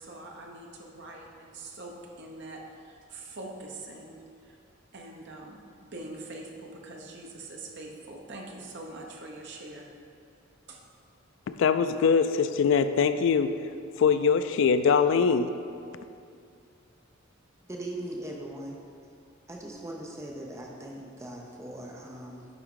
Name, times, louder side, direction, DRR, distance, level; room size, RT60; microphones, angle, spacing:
voice 1, 0.0-4.6 4.9-9.9 10.7-10.8, right 2 dB, 55° right, 0 dB, 0.8 m, -43 dB
voice 2, 11.5-15.5, left 6 dB, 65° left, 10 dB, 0.3 m, -23 dB
voice 3, 17.7-18.8 19.5-22.5, right 1 dB, 15° right, 0 dB, 0.5 m, -39 dB
9.3 x 3.5 x 3.7 m, 2.4 s
head